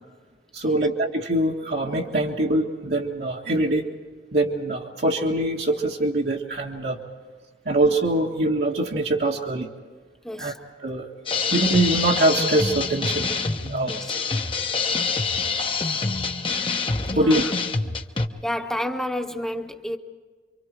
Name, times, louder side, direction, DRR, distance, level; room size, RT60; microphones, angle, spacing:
voice 1, 0.5-3.8 4.3-7.0 7.7-9.7 10.4-10.5 10.8-11.1 11.5-13.3 13.6-14.0 17.2-17.4, right 1 dB, 65° right, -3 dB, 1.9 m, -23 dB
voice 2, 10.2-10.6 13.9-14.2 17.1-17.5 18.4-20.0, left 1 dB, 5° left, 5 dB, 1.2 m, -30 dB
sound 1, 11.3-18.3, left 4 dB, 30° left, 1.1 m, -26 dB
28.5 x 25.0 x 4.7 m, 1.5 s
head